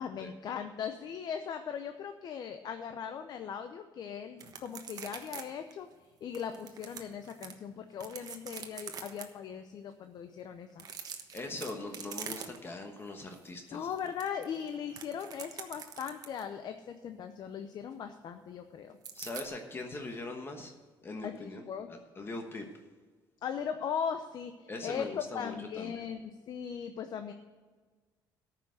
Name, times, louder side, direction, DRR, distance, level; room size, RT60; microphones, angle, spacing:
voice 1, 0.0-5.9 6.2-10.8 13.7-19.0 21.2-21.9 23.4-27.3, left 7 dB, 55° left, 7 dB, 0.7 m, -39 dB
sound 1, 4.4-5.4 5.7-5.8 6.3-7.5 7.9-9.2 10.7-12.8 13.2-13.4 13.7-16.5 19.0-19.5, right 7 dB, 50° right, 1.2 m, -44 dB
voice 2, 11.3-13.9 19.1-20.7 21.0-22.7 24.7-26.0, left 2 dB, 25° left, 4 dB, 1.2 m, -41 dB
13.5 x 6.0 x 6.4 m, 1.4 s
cardioid pair, 120°, 8 cm